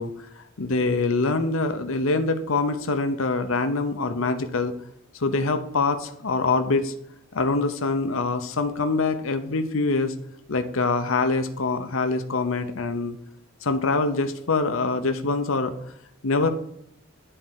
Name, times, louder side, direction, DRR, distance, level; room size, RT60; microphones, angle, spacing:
voice 1, 0.0-4.7 5.1-6.9 7.3-10.1 10.5-13.2 13.6-15.7 16.2-16.5, left 3 dB, 75° left, 8 dB, 0.8 m, -24 dB
10.0 x 4.4 x 7.5 m, 0.74 s
head